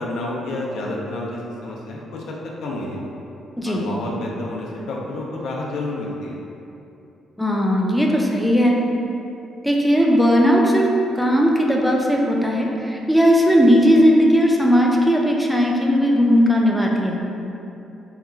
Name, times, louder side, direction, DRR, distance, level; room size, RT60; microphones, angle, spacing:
voice 1, 0.0-2.4 2.6-3.0 3.6-6.4, left 1 dB, 75° left, -3 dB, 0.4 m, -29 dB
voice 2, 3.6-3.9 7.4-8.8 9.6-10.9 11.1-17.2, equal, ahead, -2 dB, 0.3 m, -17 dB
2.8 x 2.3 x 2.3 m, 2.8 s
cardioid pair, 90°, 0 cm